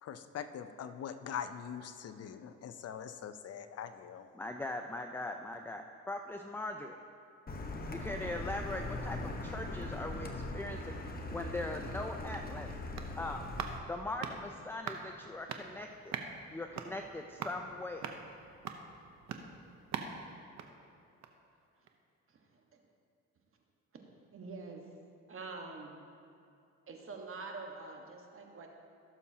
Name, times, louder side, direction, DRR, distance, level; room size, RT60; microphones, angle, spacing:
voice 1, 0.0-4.3, left 8 dB, 55° left, 10 dB, 0.6 m, -43 dB
voice 2, 4.3-7.0 7.9-12.7 13.2-13.5 13.9-16.1 16.5-18.2, left 2 dB, 5° left, 4 dB, 0.4 m, -40 dB
Car, 7.5-13.8, left 2 dB, 30° left, 1.0 m, -40 dB
sound 1, 12.3-21.5 21.8-21.9, right 6 dB, 65° right, 0.8 m, -45 dB
voice 3, 22.3-22.8 24.3-24.8 25.3-26.0 26.9-28.7, right 3 dB, 45° right, 2 dB, 1.3 m, -46 dB
16.0 x 7.1 x 2.8 m, 2.5 s
cardioid pair, 90°, 30 cm